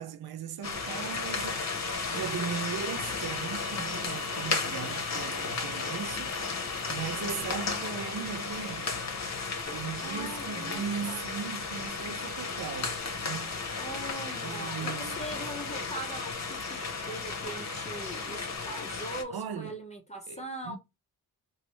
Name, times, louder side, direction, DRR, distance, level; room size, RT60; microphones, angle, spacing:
voice 1, 0.0-9.0 9.7-13.5 14.4-15.4 19.3-19.8 20.3-20.8, right 8 dB, 70° right, 0.7 m, -38 dB
sound 1, 0.6-19.2, left 4 dB, 45° left, 1.0 m, -34 dB
sound 2, 2.7-7.8, left 7 dB, 60° left, 0.7 m, -47 dB
voice 2, 10.0-11.2 13.8-20.8, right 1 dB, 15° left, 0.9 m, -41 dB
2.9 x 2.7 x 3.0 m
supercardioid pair, 40°, 39 cm